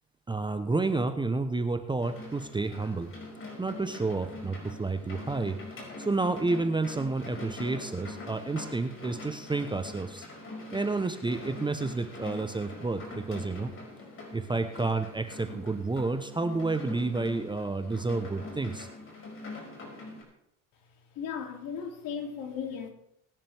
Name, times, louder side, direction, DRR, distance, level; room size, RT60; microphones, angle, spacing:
voice 1, 0.3-3.1 3.6-5.6 6.0-10.2 10.7-13.7 14.3-18.9, right 3 dB, 10° right, 0.8 m, -30 dB
sound 1, 2.0-20.2, left 2 dB, 30° left, 5.5 m, -43 dB
voice 2, 21.2-22.9, left 7 dB, 60° left, 2.7 m, -36 dB
20.0 x 10.0 x 3.4 m
supercardioid pair, 90°, 39 cm